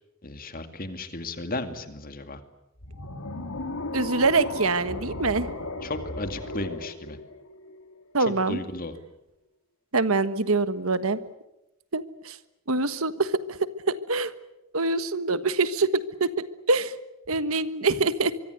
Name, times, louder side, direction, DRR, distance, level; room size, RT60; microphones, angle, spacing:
voice 1, 0.2-2.4 5.8-7.2 8.2-8.9, left 2 dB, 40° left, 8 dB, 2.4 m, -34 dB
sound 1, 2.8-8.0, left 2 dB, 85° left, 3.1 m, -35 dB
voice 2, 3.9-5.5 8.1-8.6 9.9-11.2 11.9-12.4 12.7-13.4 14.1-14.3 14.7-16.3 16.7-16.9 17.3-18.3, right 3 dB, 70° right, 12 dB, 1.4 m, -24 dB
25.0 x 24.0 x 8.2 m, 0.91 s
head